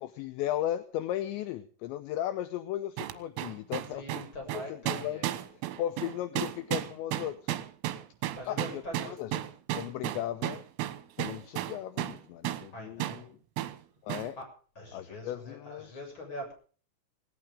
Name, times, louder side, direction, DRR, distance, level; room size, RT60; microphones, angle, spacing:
voice 1, 0.0-4.3 4.5-5.2 5.8-7.6 8.5-9.3 9.7-10.6 11.2-13.4 14.0-14.4 14.9-16.0, left 12 dB, 75° left, 12 dB, 2.9 m, -36 dB
sound 1, 3.0-12.2 12.5-12.7 13.0-13.2 13.6-13.8 14.1-14.3, right 14 dB, 85° right, 3.8 m, -34 dB
voice 2, 3.9-5.4 8.3-9.2 12.7-13.3 14.4-14.5 14.8-16.5, left 1 dB, 25° left, 2 dB, 7.7 m, -43 dB
18.0 x 18.0 x 3.7 m, 0.41 s
omnidirectional pair, 5.8 m